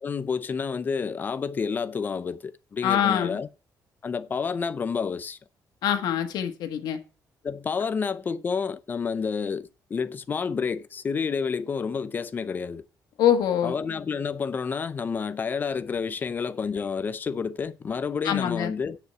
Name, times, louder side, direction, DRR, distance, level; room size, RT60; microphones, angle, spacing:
voice 1, 0.0-3.5 4.0-5.4 7.4-12.8 13.6-19.0, left 5 dB, 25° left, 0.6 m, -29 dB
voice 2, 2.8-3.4 5.8-7.0 13.2-13.7 18.2-18.7, left 10 dB, 80° left, 1.5 m, -24 dB
9.7 x 5.0 x 7.9 m
cardioid pair, 170°, 7 cm